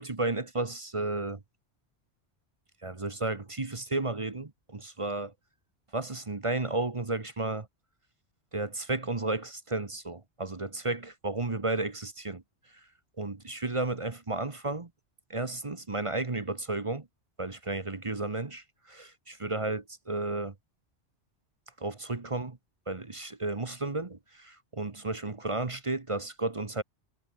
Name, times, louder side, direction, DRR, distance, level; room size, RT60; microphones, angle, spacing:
voice 1, 0.0-1.4 2.8-5.3 5.9-7.7 8.5-12.4 13.2-14.9 15.3-17.1 17.4-20.5 21.8-22.6 22.9-26.8, right 2 dB, 30° right, 1.1 m, -33 dB
omnidirectional pair, 1.2 m